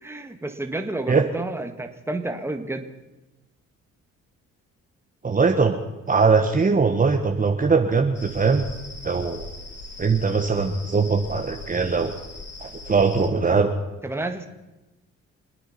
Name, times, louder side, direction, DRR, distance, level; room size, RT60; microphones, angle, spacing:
voice 1, 0.0-2.8 14.0-14.5, right 2 dB, 10° right, 5 dB, 1.8 m, -30 dB
voice 2, 5.2-5.8 6.1-8.6 9.0-9.4 10.0-12.1 12.6-13.7, right 4 dB, 30° right, 4 dB, 1.4 m, -21 dB
sound 1, 8.1-13.3, left 2 dB, 35° left, 3.1 m, -40 dB
26.5 x 9.3 x 5.9 m, 1.0 s
cardioid pair, 90°, 30 cm